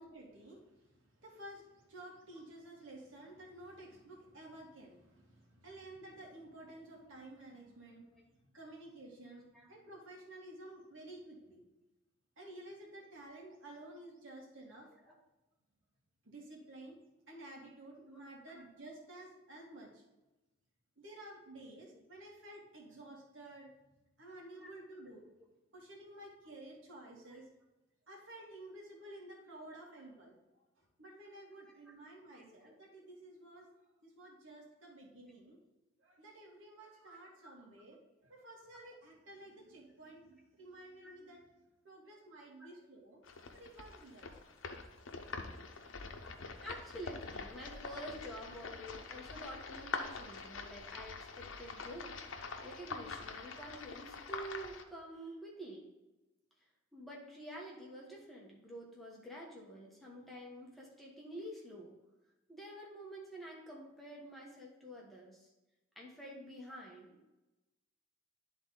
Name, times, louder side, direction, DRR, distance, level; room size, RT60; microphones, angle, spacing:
voice 1, 0.0-11.6 12.4-14.9 16.2-17.0 17.3-20.0 21.0-23.9 24.2-25.2 25.7-27.5 28.1-30.3 30.8-33.7 34.0-35.6 36.0-41.4 41.8-43.2 43.5-44.4, right 1 dB, 80° right, -2 dB, 2.0 m, -52 dB
voice 2, 32.3-32.7 37.0-37.1 41.0-41.1 42.6-42.8 46.6-52.1 52.6-55.8 56.9-62.0 62.5-65.5 65.9-67.3, right 1 dB, ahead, -3 dB, 1.3 m, -49 dB
sound 1, 43.2-54.8, left 4 dB, 80° left, 0.8 m, -45 dB
10.5 x 3.9 x 4.0 m, 1.0 s
head